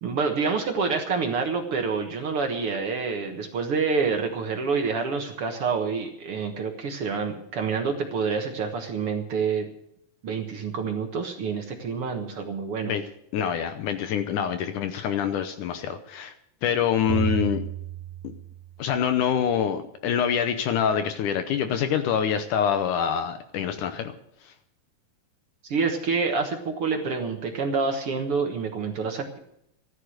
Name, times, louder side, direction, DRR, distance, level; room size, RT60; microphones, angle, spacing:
voice 1, 0.0-9.7 10.2-12.9 25.6-29.4, right 5 dB, 55° right, 4 dB, 1.7 m, -27 dB
voice 2, 13.3-16.3 16.6-17.6 18.8-24.1, left 8 dB, 70° left, 8 dB, 2.1 m, -25 dB
sound 1, 17.1-19.0, right 10 dB, 85° right, 3.1 m, -32 dB
14.5 x 11.5 x 6.4 m, 0.75 s
omnidirectional pair, 4.2 m